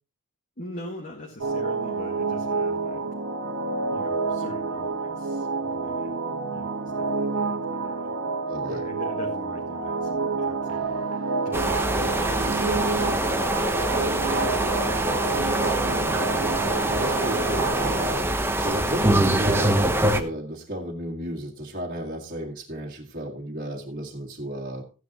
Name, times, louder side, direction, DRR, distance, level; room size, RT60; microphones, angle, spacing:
voice 1, 0.6-3.0 3.9-6.2 6.5-8.1 8.7-11.1 11.4-13.1, left 2 dB, 40° left, -1 dB, 1.8 m, -43 dB
sound 1, 1.4-18.1, right 4 dB, 70° right, 1.4 m, -28 dB
voice 2, 8.4-8.8 15.1-15.3 15.8-16.3 16.9-24.8, equal, 40° right, -2 dB, 1.8 m, -33 dB
sound 2, 11.5-20.2, right 1 dB, 10° right, 0.9 m, -24 dB
14.5 x 9.5 x 3.0 m, 0.33 s
head